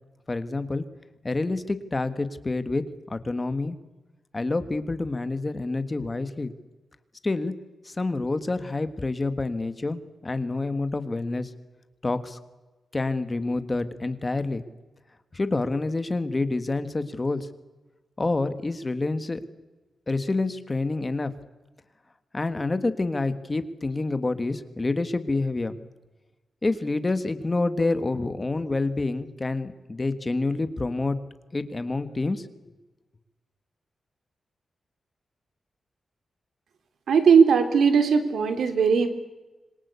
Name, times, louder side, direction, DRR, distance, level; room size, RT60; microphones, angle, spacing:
voice 1, 0.3-0.8 1.2-3.8 4.3-6.5 7.2-7.5 7.8-11.5 12.0-12.4 12.9-14.6 15.3-17.5 18.2-19.4 20.1-21.3 22.3-25.8 26.6-31.2 31.5-32.7, left 3 dB, 20° left, 11 dB, 1.5 m, -28 dB
voice 2, 37.1-39.1, right 6 dB, 85° right, 8 dB, 3.1 m, -19 dB
26.5 x 22.5 x 8.3 m, 1.1 s
wide cardioid pair, 155°, 0 cm